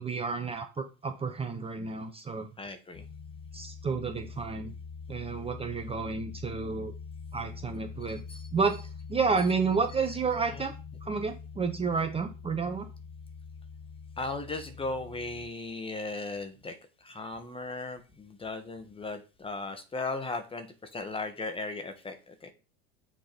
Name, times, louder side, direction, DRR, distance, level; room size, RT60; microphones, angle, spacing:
voice 1, 0.0-2.5 3.5-4.7 5.1-6.9 7.3-8.2 8.5-8.8 9.1-10.7 11.0-12.9, right 5 dB, 20° right, 6 dB, 0.9 m, -30 dB
voice 2, 2.6-3.1 8.3-8.5 10.5-10.6 14.2-16.7 17.0-20.7 20.9-22.5, left 3 dB, 15° left, 8 dB, 1.4 m, -37 dB
sound 1, 2.9-15.5, left 5 dB, 55° left, 1.7 m, -44 dB
6.5 x 3.9 x 5.2 m, 0.31 s
hypercardioid pair, 100°, 32 cm